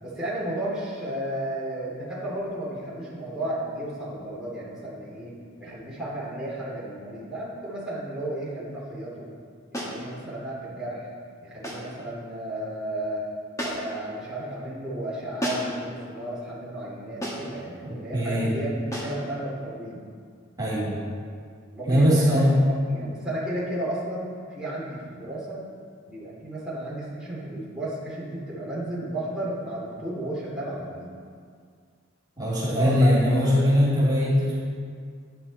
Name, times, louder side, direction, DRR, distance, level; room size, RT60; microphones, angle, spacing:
voice 1, 0.0-9.3 9.7-11.1 11.4-13.2 13.6-20.0 21.7-22.4 22.9-25.6 26.1-31.1 32.7-33.3, right 1 dB, 5° right, -9 dB, 2.7 m, -33 dB
sound 1, 9.7-10.0 11.6-11.9 13.6-14.0 15.4-15.8 17.2-17.6 18.9-19.2, equal, 15° left, 1.8 m, -32 dB
voice 2, 17.8-18.5 20.6-20.9 21.9-22.5 32.4-34.6, equal, 20° right, -9 dB, 2.5 m, -21 dB
10.5 x 10.5 x 4.2 m, 2.1 s
head